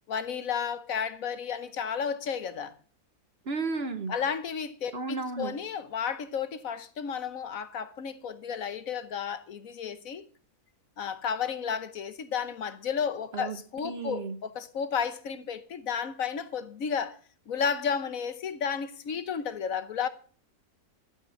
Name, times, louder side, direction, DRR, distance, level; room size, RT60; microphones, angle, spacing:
voice 1, 0.1-2.7 4.1-10.2 11.0-17.2 17.5-20.1, left 7 dB, 65° left, 1.3 m, -32 dB
voice 2, 3.5-4.1 4.9-5.5 13.3-13.6 13.8-14.4, right 4 dB, 45° right, 1.0 m, -33 dB
13.0 x 8.9 x 6.4 m
omnidirectional pair, 1.6 m